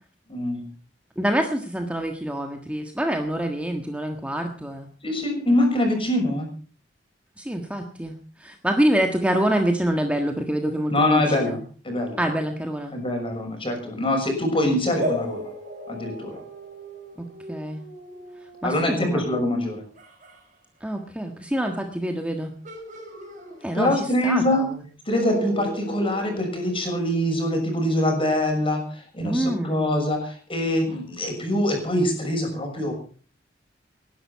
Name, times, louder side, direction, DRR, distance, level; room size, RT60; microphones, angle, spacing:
voice 1, 0.3-0.6 5.0-6.5 10.9-11.6 11.8-12.2 12.9-15.5 15.9-16.4 18.6-19.8 23.7-24.7 25.1-32.9, left 1 dB, 30° left, 3 dB, 6.5 m, -24 dB
voice 2, 1.2-4.9 7.4-11.6 12.2-13.0 17.5-17.8 18.6-19.2 20.8-22.5 23.6-24.8 29.2-29.8, right 1 dB, 5° right, 4 dB, 1.6 m, -26 dB
sound 1, 15.0-20.4 22.6-24.1 24.4-24.5 25.1-27.3, equal, 45° right, 5.9 m, -35 dB
19.0 x 11.5 x 5.7 m, 0.41 s
head